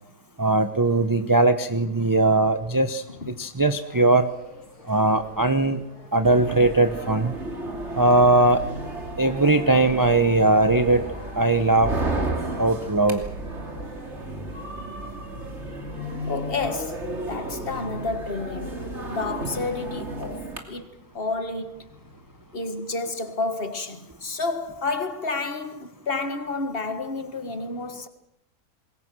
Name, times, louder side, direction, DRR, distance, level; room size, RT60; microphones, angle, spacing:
voice 1, 0.4-3.0 3.4-4.3 4.9-5.8 6.1-7.3 8.0-8.6 9.2-11.1 11.3-11.9 12.6-13.2, right 2 dB, 15° right, 0.7 m, -20 dB
voice 2, 3.1-3.5 16.3-21.9 22.5-28.1, left 3 dB, 35° left, 1.9 m, -30 dB
sound 1, 3.8-22.5, left 3 dB, 80° left, 5.7 m, -45 dB
sound 2, 6.2-20.6, right 2 dB, 45° right, 3.2 m, -33 dB
27.5 x 21.5 x 6.2 m
omnidirectional pair, 1.7 m